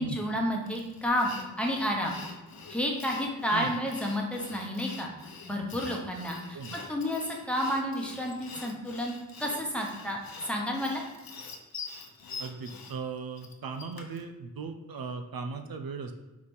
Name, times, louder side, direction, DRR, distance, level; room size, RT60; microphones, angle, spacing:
voice 1, 0.0-1.3 1.6-2.2 2.7-5.1 5.4-11.0, equal, 5° left, -1 dB, 1.1 m, -31 dB
Sawing, 0.7-14.3, left 4 dB, 70° left, 0.9 m, -45 dB
voice 2, 12.4-16.1, right 5 dB, 75° right, 7 dB, 0.6 m, -38 dB
4.8 x 4.1 x 5.5 m, 1.1 s
wide cardioid pair, 125°, 36 cm